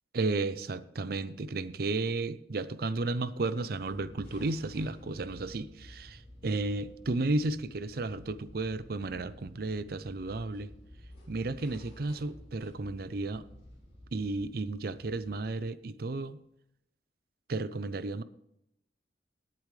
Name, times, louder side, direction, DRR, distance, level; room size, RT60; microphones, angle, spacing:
voice 1, 0.1-10.7 11.3-13.4 14.1-16.4 17.5-18.2, right 3 dB, 55° right, 15 dB, 0.5 m, -33 dB
sound 1, 3.6-15.8, left 1 dB, 35° left, 4.4 m, -52 dB
19.0 x 8.6 x 3.3 m, 0.81 s
head